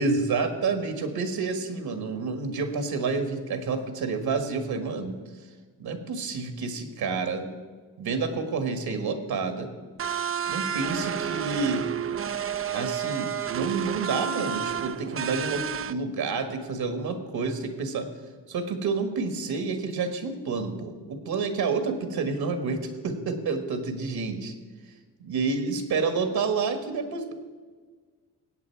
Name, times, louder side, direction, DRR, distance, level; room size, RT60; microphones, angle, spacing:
voice 1, 0.0-5.2 5.8-7.5 8.0-9.7 10.5-11.9 12.7-18.1 18.5-24.5 25.2-27.3, right 4 dB, 70° right, 7 dB, 1.7 m, -29 dB
sound 1, 10.0-15.9, right 8 dB, 35° right, 0.5 m, -30 dB
17.5 x 8.1 x 4.6 m, 1.5 s
cardioid pair, 75°, 39 cm